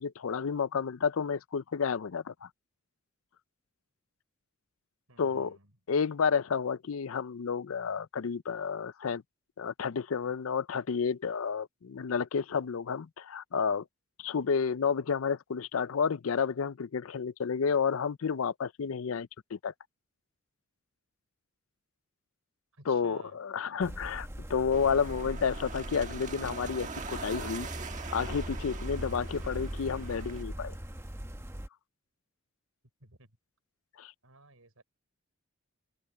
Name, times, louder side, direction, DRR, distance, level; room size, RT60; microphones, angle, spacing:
voice 1, 0.0-2.5 5.2-5.6 5.9-9.2 9.6-13.9 14.2-19.7 22.9-27.7 28.1-30.8 34.0-34.1, left 6 dB, 70° left, 0.5 m, -31 dB
voice 2, 5.1-5.8 22.7-23.4 33.0-33.4 34.2-34.8, right 3 dB, 85° right, 5.3 m, -55 dB
sound 1, 23.8-31.7, equal, 10° right, 1.0 m, -40 dB
sound 2, 24.7-30.4, right 5 dB, 35° right, 1.4 m, -43 dB
open air
head